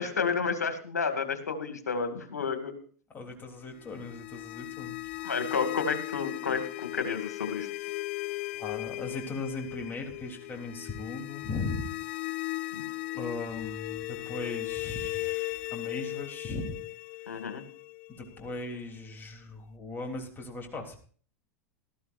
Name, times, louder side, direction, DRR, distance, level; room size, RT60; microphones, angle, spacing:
voice 1, 0.0-2.7 5.2-7.7 12.7-12.8 17.3-17.6, left 5 dB, 85° left, 7 dB, 2.4 m, -31 dB
voice 2, 3.1-5.0 8.6-12.0 13.1-16.8 17.3-17.4 18.1-21.0, left 3 dB, 25° left, 2 dB, 3.6 m, -38 dB
sound 1, 3.8-18.7, left 20 dB, 55° left, 0.6 m, -37 dB
18.5 x 14.0 x 2.7 m, 0.43 s
hypercardioid pair, 95°, 9 cm